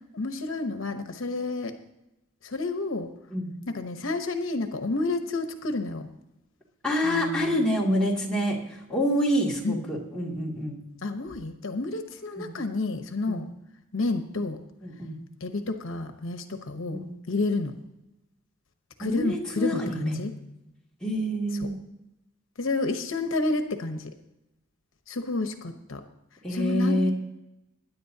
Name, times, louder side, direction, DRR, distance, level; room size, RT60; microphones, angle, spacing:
voice 1, 0.1-1.8 2.4-3.1 3.7-6.1 7.0-7.6 9.6-9.8 11.0-13.5 13.9-14.6 15.4-17.0 17.3-17.7 19.0-20.3 22.6-24.1 25.1-26.0 26.5-27.1, left 2 dB, 70° left, 7 dB, 1.0 m, -30 dB
voice 2, 6.8-10.8 12.4-12.6 13.3-13.4 14.8-15.2 16.9-17.1 19.0-20.3 21.0-21.8 26.4-27.1, equal, 5° left, -4 dB, 2.4 m, -27 dB
21.0 x 10.0 x 2.8 m, 0.91 s
head